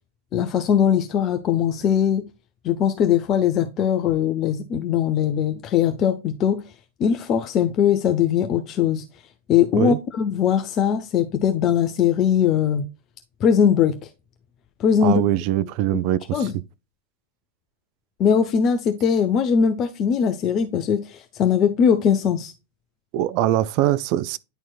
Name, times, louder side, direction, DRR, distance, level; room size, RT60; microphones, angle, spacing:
voice 1, 0.3-2.2 2.6-6.6 7.0-9.0 9.5-12.8 13.4-13.9 14.8-15.2 16.3-16.5 18.2-22.5, left 8 dB, 35° left, 0.7 m, -20 dB
voice 2, 15.0-16.5 23.1-24.4, right 13 dB, 45° right, 0.4 m, -22 dB
10.0 x 4.5 x 2.3 m
figure-of-eight pair, 90°, 0 cm